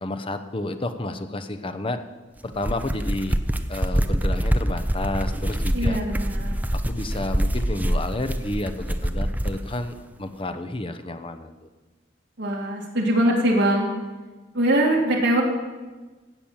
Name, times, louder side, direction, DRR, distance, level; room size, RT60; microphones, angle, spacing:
voice 1, 0.0-2.0 2.4-3.4 3.7-6.0 6.7-11.7, left 2 dB, 25° left, 9 dB, 0.8 m, -31 dB
sound 1, 2.4-9.6, equal, 10° right, 0.6 m, -25 dB
voice 2, 5.7-6.5 12.4-13.9 14.5-15.4, right 1 dB, 60° right, -2 dB, 2.4 m, -22 dB
16.5 x 6.1 x 8.7 m, 1.3 s
head